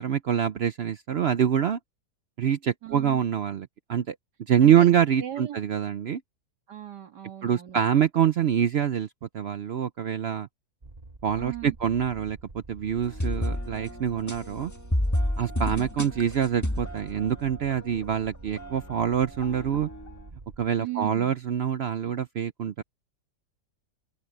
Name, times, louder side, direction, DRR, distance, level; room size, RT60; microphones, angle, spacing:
voice 1, 0.0-1.8 2.4-4.1 4.5-6.2 7.4-9.1 9.3-10.5 11.2-14.7 15.4-19.9 20.6-22.8, right 9 dB, 70° right, 0.6 m, -25 dB
voice 2, 2.8-3.2 4.6-4.9 5.2-5.7 6.7-7.8 11.4-11.8 20.8-21.3, right 13 dB, 85° right, 2.5 m, -37 dB
sound 1, 10.8-20.7, right 2 dB, 25° right, 1.2 m, -47 dB
sound 2, 13.0-18.2 18.5-20.1, left 1 dB, 10° left, 1.5 m, -31 dB
open air
omnidirectional pair, 1.8 m